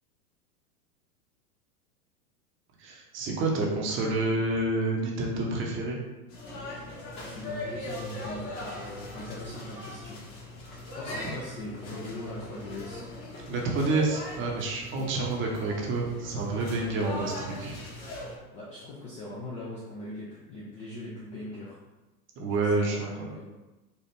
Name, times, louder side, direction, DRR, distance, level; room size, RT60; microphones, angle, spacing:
voice 1, 2.8-6.0 13.5-17.8 22.4-23.4, right 2 dB, 25° right, -1 dB, 0.7 m, -28 dB
sound 1, 6.3-18.4, left 1 dB, 50° left, 1.4 m, -40 dB
voice 2, 7.3-10.2 10.9-13.0 15.0-15.1 18.5-21.8 22.5-23.5, left 1 dB, 15° left, -6 dB, 0.3 m, -40 dB
4.2 x 2.4 x 3.3 m, 1.1 s
hypercardioid pair, 110°, 46 cm